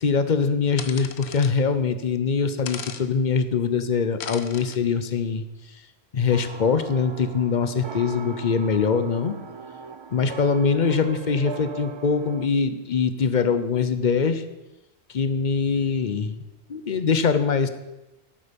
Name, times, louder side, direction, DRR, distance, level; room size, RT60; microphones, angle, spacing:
voice 1, 0.0-5.4 6.1-9.4 10.1-14.4 15.1-16.4 16.7-17.7, left 5 dB, 50° left, 11 dB, 0.8 m, -23 dB
sound 1, 0.8-1.5 2.7-3.0 4.2-4.8, left 7 dB, 80° left, 1.0 m, -36 dB
sound 2, 6.3-12.5, right 5 dB, 45° right, 0.4 m, -39 dB
11.0 x 8.5 x 5.2 m, 0.98 s
omnidirectional pair, 1.1 m